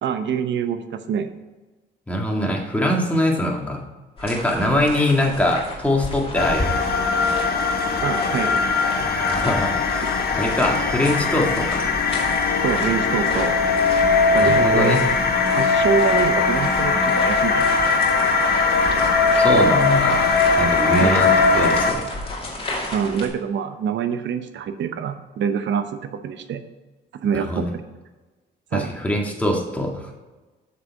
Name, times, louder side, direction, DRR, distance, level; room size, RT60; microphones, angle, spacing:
voice 1, 0.0-1.3 8.0-8.7 12.6-13.6 14.3-15.0 15.5-17.8 21.0-21.2 22.9-26.6 27.2-27.8 28.7-28.9, right 7 dB, 65° right, 9 dB, 0.9 m, -25 dB
voice 2, 2.1-3.8 4.2-6.7 9.0-10.1 10.3-11.9 14.4-15.0 19.3-22.0 27.3-27.7 28.7-30.1, left 1 dB, 5° left, -1 dB, 2.1 m, -23 dB
sound 1, 4.2-23.3, left 1 dB, 30° left, 2.3 m, -34 dB
sound 2, 6.3-21.9, left 4 dB, 50° left, 1.4 m, -20 dB
7.5 x 6.8 x 4.7 m, 1.2 s
cardioid pair, 90°, 20 cm